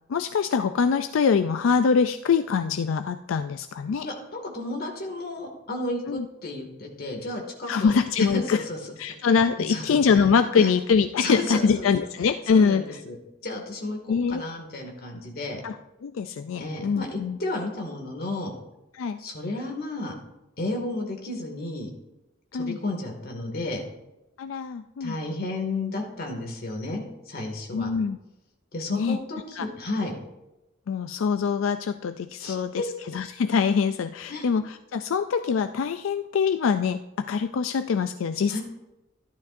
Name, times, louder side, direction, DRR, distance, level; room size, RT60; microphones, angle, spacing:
voice 1, 0.1-4.1 6.1-6.3 7.7-8.6 9.0-13.0 14.1-14.4 15.6-15.8 16.0-17.4 18.9-19.2 22.5-22.8 24.4-25.2 27.7-28.2 28.9-29.2 29.6-29.7 30.9-38.6, left 6 dB, 85° left, 9 dB, 0.4 m, -24 dB
voice 2, 4.0-8.8 9.2-10.3 10.6-10.7 11.2-11.9 12.2-13.2 13.4-15.6 16.6-18.5 19.2-20.2 20.6-21.9 22.5-23.8 25.0-27.9 28.7-30.2 32.4-32.8 34.3-34.5 38.5-38.6, left 2 dB, 50° left, 2 dB, 2.2 m, -33 dB
14.0 x 11.5 x 2.6 m, 0.97 s
head